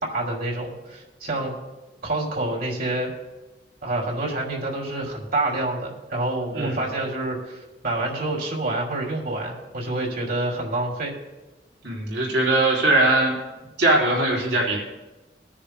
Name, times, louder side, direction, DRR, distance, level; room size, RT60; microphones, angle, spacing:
voice 1, 0.0-1.5 2.0-3.1 3.8-7.6 7.8-11.1, right 2 dB, 55° right, -1 dB, 2.6 m, -27 dB
voice 2, 6.5-6.9 11.8-13.3 13.8-14.8, right 2 dB, 75° right, -4 dB, 3.6 m, -20 dB
22.5 x 10.0 x 2.2 m, 1.1 s
head